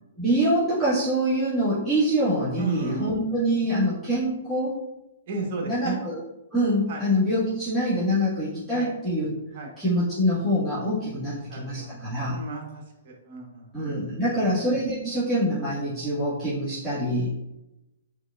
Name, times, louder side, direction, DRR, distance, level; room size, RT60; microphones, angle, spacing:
voice 1, 0.2-4.8 5.6-6.2 6.5-9.3 9.8-12.4 13.7-17.3, equal, 5° left, -14 dB, 1.5 m, -25 dB
voice 2, 2.6-3.1 5.3-6.0 6.9-7.0 8.7-8.9 9.5-9.7 11.3-11.9 12.2-14.5, right 3 dB, 50° right, 1 dB, 1.2 m, -35 dB
4.6 x 3.9 x 2.4 m, 0.94 s
hypercardioid pair, 145°, 0 cm